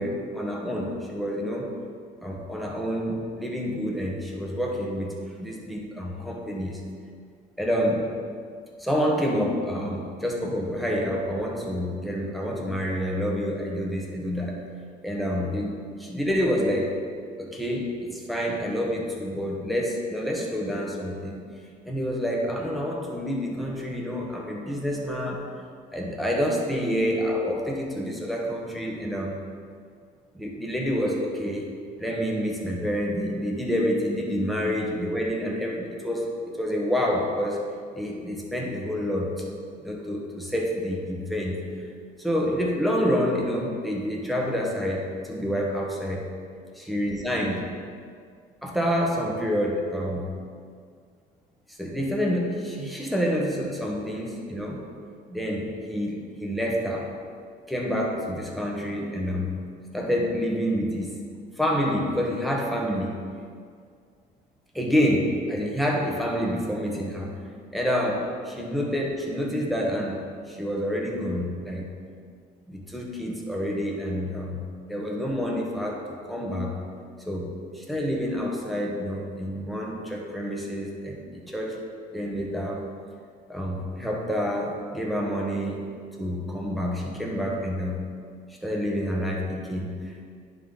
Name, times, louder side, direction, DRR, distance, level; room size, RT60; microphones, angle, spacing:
voice 1, 0.0-1.7 2.2-6.8 7.6-8.0 8.8-14.6 15.0-16.9 17.4-21.4 21.8-25.4 25.9-29.4 30.3-31.7 32.0-37.6 37.9-39.3 39.8-41.6 42.2-46.3 46.9-47.7 48.6-50.3 51.8-54.8 55.3-57.1 57.7-59.6 59.9-61.1 61.6-63.2 64.7-67.3 67.7-71.9 72.7-74.6 74.9-76.8 77.3-81.8 82.1-82.8 83.5-85.8 86.2-88.1 88.6-90.2, equal, ahead, -2 dB, 1.2 m, -28 dB
10.5 x 3.8 x 4.1 m, 2.1 s
cardioid pair, 110°, 17 cm